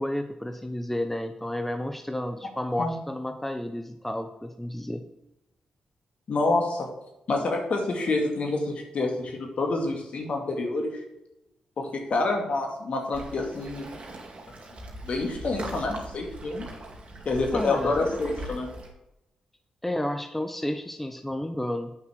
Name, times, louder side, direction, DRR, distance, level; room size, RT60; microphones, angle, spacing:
voice 1, 0.0-5.0 17.5-18.0 19.8-22.0, left 1 dB, 10° left, 7 dB, 0.9 m, -31 dB
voice 2, 6.3-6.9 7.3-11.0 11.8-13.9 14.7-16.7 17.3-18.7, left 3 dB, 60° left, 2 dB, 2.4 m, -27 dB
Waves surf, 13.1-18.9, right 1 dB, 50° right, 2.3 m, -40 dB
8.8 x 5.8 x 4.6 m, 0.89 s
supercardioid pair, 50°, 2 cm